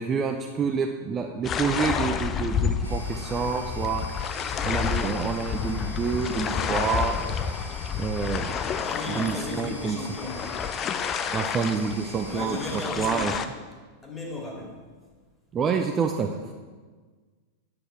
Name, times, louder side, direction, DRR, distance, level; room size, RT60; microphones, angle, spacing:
voice 1, 0.0-4.0 4.6-7.2 8.0-8.5 9.1-10.0 11.3-12.6 13.0-13.3 15.5-16.3, right 6 dB, 25° right, 3 dB, 0.6 m, -27 dB
sound 1, 1.4-13.5, left 7 dB, 30° left, 0.5 m, -30 dB
sound 2, 2.8-12.9, equal, 90° right, 1.1 m, -44 dB
voice 2, 8.8-10.5 12.2-13.4 14.0-14.8, left 2 dB, 10° left, -1 dB, 2.3 m, -35 dB
9.5 x 7.9 x 4.5 m, 1.4 s
figure-of-eight pair, 90°, 0 cm